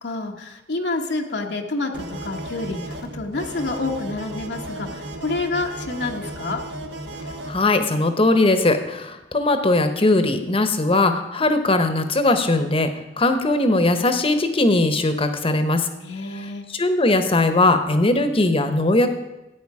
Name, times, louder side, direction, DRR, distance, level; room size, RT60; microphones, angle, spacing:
voice 1, 0.0-6.6 16.0-16.6, left 3 dB, 75° left, 2 dB, 1.2 m, -28 dB
sound 1, 1.9-7.6, right 1 dB, 85° right, 1.4 m, -34 dB
voice 2, 7.5-12.9 13.2-15.9 16.7-19.1, left 2 dB, 35° left, 9 dB, 1.1 m, -19 dB
14.5 x 9.2 x 4.9 m, 0.98 s
head